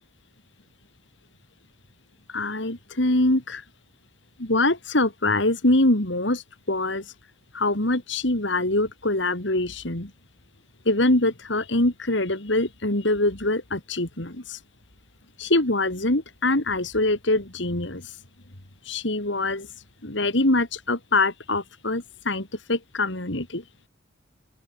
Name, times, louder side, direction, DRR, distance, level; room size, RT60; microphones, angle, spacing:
voice 1, 2.3-3.6 4.4-7.1 7.5-10.1 10.8-14.6 15.4-18.2 18.8-19.7 20.0-23.6, left 2 dB, 70° left, 3.3 m, -24 dB
open air
head